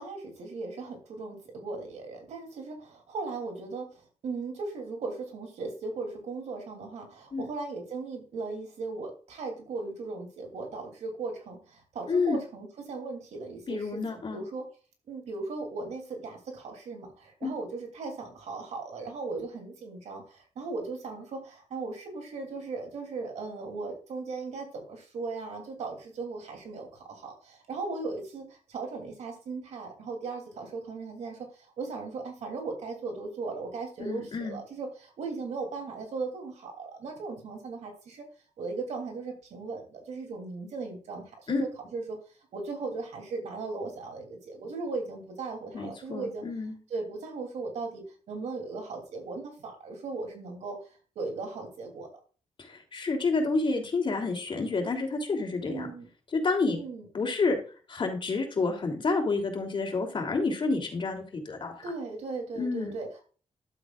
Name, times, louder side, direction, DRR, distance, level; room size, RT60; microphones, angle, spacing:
voice 1, 0.0-14.7 15.1-38.3 38.6-42.2 42.5-46.4 46.9-52.1 55.7-56.1 56.7-57.1 61.8-63.2, right 3 dB, 90° right, 4 dB, 2.9 m, -37 dB
voice 2, 12.1-12.4 13.7-14.4 17.4-17.5 34.0-34.6 41.5-41.6 45.7-46.8 52.6-55.9 56.3-56.8 57.1-57.6 57.9-61.8 62.5-62.9, left 3 dB, 50° left, 3 dB, 3.1 m, -29 dB
11.5 x 8.0 x 2.4 m, 0.38 s
cardioid pair, 80°, 11 cm